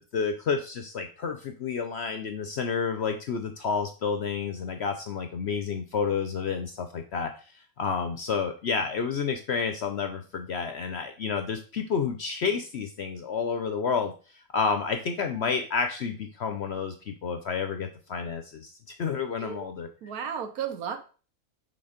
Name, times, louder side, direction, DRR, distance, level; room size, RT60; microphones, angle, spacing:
voice 1, 0.0-7.3 7.8-14.1 14.5-19.9, left 5 dB, 60° left, 6 dB, 0.7 m, -30 dB
voice 2, 20.0-21.0, right 8 dB, 75° right, 7 dB, 1.4 m, -34 dB
6.0 x 3.7 x 5.0 m, 0.37 s
omnidirectional pair, 1.6 m